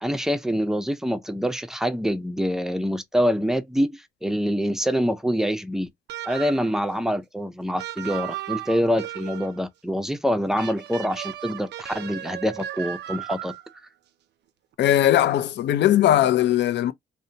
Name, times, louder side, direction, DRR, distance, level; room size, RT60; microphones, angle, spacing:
voice 1, 0.0-5.9 6.3-13.5, equal, ahead, 0.4 m, -25 dB
sound 1, 6.1-6.8 7.8-9.6 10.6-13.8, right 13 dB, 60° right, 0.4 m, -35 dB
voice 2, 14.8-16.9, left 12 dB, 60° left, 0.4 m, -19 dB
2.6 x 2.1 x 2.7 m
cardioid pair, 90°, 20 cm